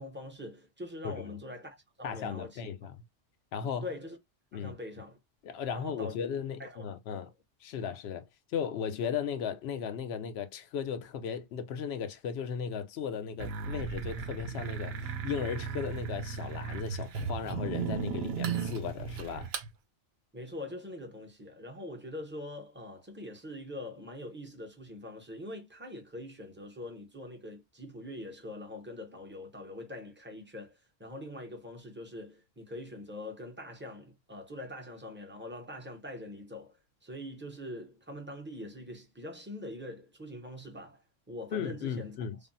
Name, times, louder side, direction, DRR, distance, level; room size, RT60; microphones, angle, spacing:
voice 1, 0.0-2.6 3.8-4.2 4.5-5.2 5.7-6.3 6.6-6.8 7.1-7.3 20.3-42.2, left 1 dB, 15° right, 0.5 m, -43 dB
voice 2, 2.0-3.0 3.5-3.9 4.5-4.7 5.4-7.3 7.6-19.5 41.5-42.4, left 7 dB, 65° left, 0.8 m, -36 dB
sound 1, 13.4-19.7, right 6 dB, 65° right, 0.7 m, -36 dB
3.3 x 2.0 x 2.5 m
omnidirectional pair, 1.3 m